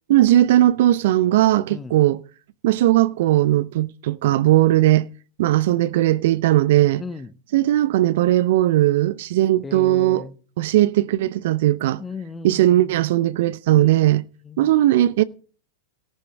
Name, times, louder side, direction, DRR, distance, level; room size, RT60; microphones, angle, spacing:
voice 1, 0.1-2.2 2.6-5.1 5.4-7.0 7.5-10.3 10.6-12.0 12.4-14.2 14.6-15.2, right 14 dB, 60° right, 0.6 m, -18 dB
voice 2, 7.0-7.3 9.6-10.4 12.0-13.1 13.7-14.7, left 4 dB, 15° left, 0.9 m, -37 dB
14.5 x 11.5 x 4.7 m
hypercardioid pair, 100°, 0 cm